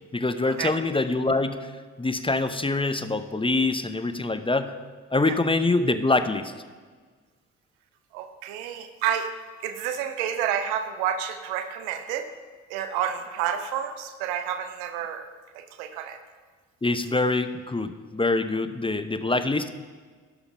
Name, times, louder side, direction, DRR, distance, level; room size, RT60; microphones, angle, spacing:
voice 1, 0.1-1.7 2.0-4.7 5.1-6.5 16.8-19.7, left 2 dB, 15° left, 10 dB, 0.7 m, -25 dB
voice 2, 8.1-9.3 9.6-12.2 12.7-15.3 15.5-16.2, right 9 dB, 90° right, 9 dB, 0.7 m, -29 dB
11.5 x 5.8 x 5.5 m, 1.5 s
hypercardioid pair, 40°, 33 cm